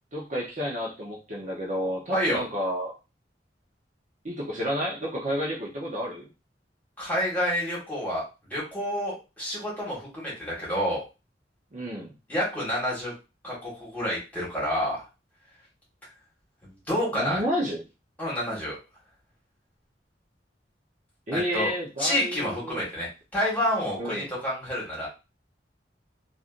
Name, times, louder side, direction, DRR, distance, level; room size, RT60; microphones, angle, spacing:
voice 1, 0.1-2.9 4.2-6.2 11.7-12.1 17.1-17.8 21.3-22.8 24.0-24.3, equal, 40° right, -3 dB, 0.7 m, -30 dB
voice 2, 2.1-2.4 7.0-8.2 8.5-11.0 12.3-13.1 13.4-15.0 16.6-17.4 18.2-18.8 21.3-21.7 22.0-25.1, equal, 10° left, -6 dB, 1.7 m, -29 dB
3.2 x 2.5 x 2.5 m, 0.29 s
head